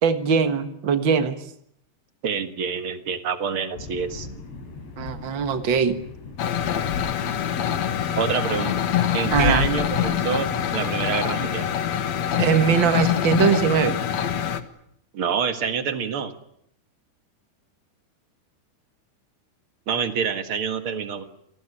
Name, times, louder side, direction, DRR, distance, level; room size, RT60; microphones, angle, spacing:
voice 1, 0.0-1.4 5.0-6.0 9.3-9.6 12.4-14.0, right 7 dB, 90° right, 9 dB, 1.0 m, -21 dB
voice 2, 2.2-4.3 8.2-8.7 9.1-11.7 15.1-16.3 19.9-21.2, right 6 dB, 55° right, 9 dB, 1.5 m, -27 dB
sound 1, 3.8-10.7, left 6 dB, 85° left, 6.8 m, -34 dB
sound 2, 6.4-14.6, left 9 dB, 55° left, 2.0 m, -25 dB
28.0 x 19.0 x 9.8 m, 0.72 s
omnidirectional pair, 4.8 m